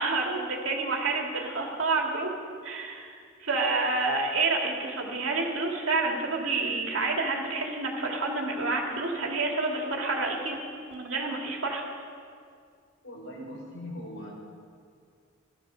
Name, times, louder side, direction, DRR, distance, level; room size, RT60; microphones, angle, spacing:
voice 1, 0.0-2.3 2.6-10.6 10.9-11.8, right 3 dB, 75° right, 0 dB, 2.6 m, -29 dB
voice 2, 13.0-14.3, left 1 dB, 80° left, -3 dB, 5.3 m, -40 dB
17.5 x 12.0 x 6.6 m, 2.2 s
head